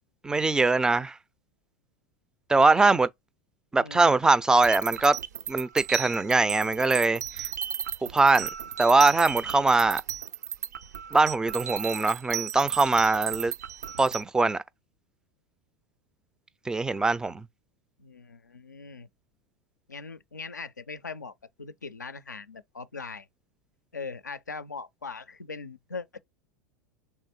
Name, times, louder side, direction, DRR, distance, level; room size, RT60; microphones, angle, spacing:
voice 1, 0.2-1.2 2.5-3.1 3.7-5.2 5.5-7.5 8.1-8.5 8.8-10.0 11.1-13.5 14.0-14.6 16.7-17.5, right 3 dB, 10° right, 0.3 m, -22 dB
voice 2, 3.8-4.1 18.0-19.1 19.9-23.3 23.9-26.2, left 4 dB, 90° left, 0.4 m, -40 dB
sound 1, 4.6-14.2, right 9 dB, 75° right, 0.4 m, -34 dB
3.5 x 2.8 x 4.1 m
figure-of-eight pair, 85°, 9 cm